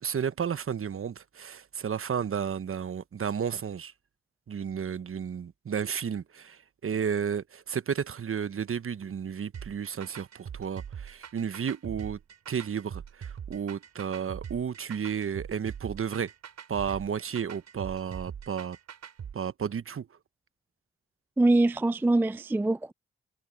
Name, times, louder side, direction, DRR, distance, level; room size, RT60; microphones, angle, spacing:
voice 1, 0.0-3.9 4.5-12.2 12.5-16.3 16.7-18.8 19.3-20.1, right 7 dB, 45° right, 1.1 m, -32 dB
sound 1, 9.5-19.3, right 8 dB, 65° right, 6.1 m, -42 dB
voice 2, 21.4-22.9, right 2 dB, 5° right, 0.4 m, -23 dB
hypercardioid pair, 45°, 29 cm